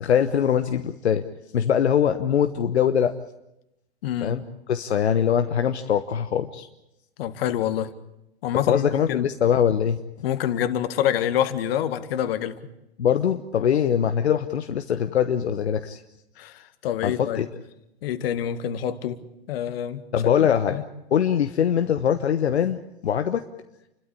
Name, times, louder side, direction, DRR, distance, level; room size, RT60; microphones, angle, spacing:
voice 1, 0.0-1.2 1.5-3.1 4.2-4.4 4.7-6.7 8.7-10.0 13.0-16.0 17.0-17.5 20.1-20.8 21.1-23.4, left 8 dB, 80° left, 9 dB, 1.1 m, -22 dB
voice 2, 4.0-4.4 7.2-7.9 8.4-9.3 10.2-12.6 16.4-17.5 18.0-19.2 19.5-20.0 20.4-20.8, left 10 dB, 60° left, 12 dB, 1.9 m, -26 dB
29.5 x 12.5 x 10.0 m, 0.89 s
hypercardioid pair, 105°, 32 cm